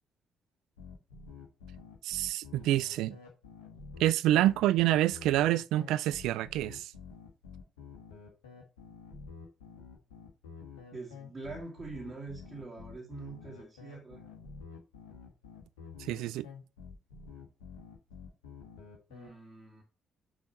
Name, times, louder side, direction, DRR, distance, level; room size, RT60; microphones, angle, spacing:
sound 1, 0.8-19.3, left 5 dB, 85° left, 1.5 m, -49 dB
voice 1, 2.0-3.2 4.0-6.9 16.0-16.4, right 14 dB, 70° right, 0.3 m, -27 dB
voice 2, 10.9-14.2 19.1-19.8, right 3 dB, 35° right, 2.2 m, -44 dB
6.5 x 4.3 x 4.4 m
hypercardioid pair, 45°, 0 cm